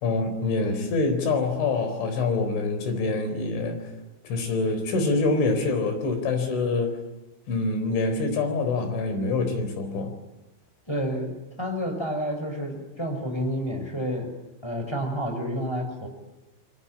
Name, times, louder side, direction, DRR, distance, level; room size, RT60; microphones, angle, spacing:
voice 1, 0.0-3.9 4.2-7.0 7.5-10.1, left 3 dB, 90° left, 8 dB, 6.6 m, -25 dB
voice 2, 10.9-14.3 14.6-16.1, equal, 5° left, 5 dB, 5.6 m, -29 dB
27.5 x 23.5 x 8.8 m, 1.1 s
omnidirectional pair, 5.2 m